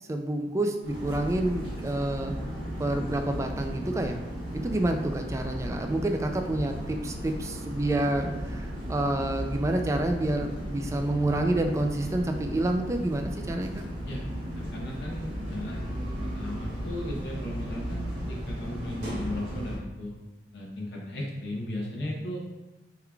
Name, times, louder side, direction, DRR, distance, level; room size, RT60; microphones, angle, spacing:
voice 1, 0.1-2.3 2.8-4.2 4.5-13.8, right 1 dB, 15° right, 5 dB, 0.3 m, -28 dB
sound 1, 0.8-19.8, equal, 80° right, 1.3 m, -35 dB
voice 2, 14.5-15.9 16.1-20.1 20.5-22.4, left 1 dB, 70° left, -3 dB, 0.7 m, -36 dB
4.5 x 3.7 x 2.3 m, 1.1 s
head